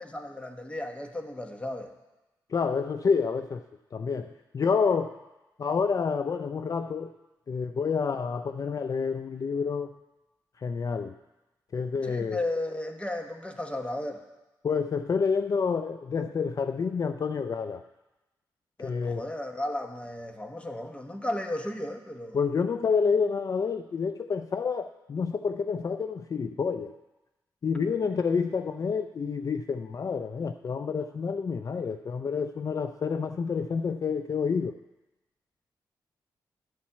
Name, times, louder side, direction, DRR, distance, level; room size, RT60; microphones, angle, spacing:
voice 1, 0.0-1.9 12.0-14.2 18.8-22.4, left 1 dB, 15° left, 6 dB, 1.1 m, -34 dB
voice 2, 2.5-3.6 3.9-5.2 5.6-7.1 7.5-9.9 10.6-11.2 11.7-12.4 14.6-17.8 18.8-19.3 22.3-26.9 27.6-34.8, left 5 dB, 45° left, 9 dB, 0.4 m, -28 dB
11.5 x 4.2 x 7.3 m, 1.0 s
cardioid pair, 55°, 8 cm